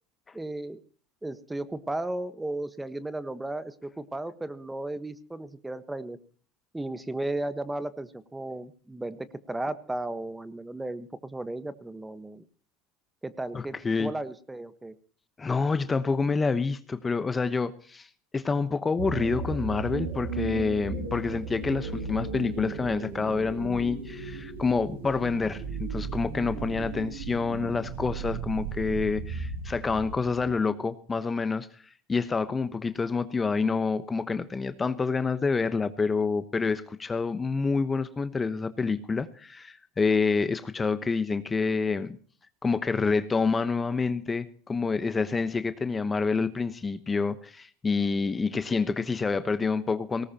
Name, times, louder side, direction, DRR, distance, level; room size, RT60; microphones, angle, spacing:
voice 1, 0.3-0.8 1.2-6.2 6.7-12.4 13.2-14.9, right 2 dB, 10° right, 13 dB, 1.3 m, -35 dB
voice 2, 13.5-14.1 15.4-18.1 18.3-31.7 32.1-42.2 42.6-50.3, left 4 dB, 20° left, 12 dB, 1.1 m, -27 dB
sound 1, 19.0-30.5, right 4 dB, 90° right, 4.2 m, -35 dB
19.0 x 18.0 x 2.9 m, 0.43 s
supercardioid pair, 95°, 0 cm